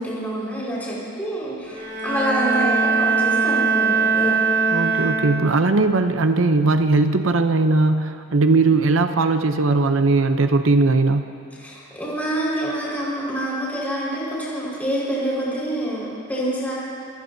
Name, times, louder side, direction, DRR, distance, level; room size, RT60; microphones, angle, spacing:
voice 1, 0.0-4.4 11.6-16.7, right 1 dB, 10° left, -7 dB, 4.9 m, -26 dB
Bowed string instrument, 1.7-5.7, right 4 dB, 60° right, 3.7 m, -21 dB
voice 2, 4.7-11.2, right 3 dB, 85° right, 8 dB, 0.7 m, -19 dB
29.0 x 17.5 x 2.8 m, 2.4 s
head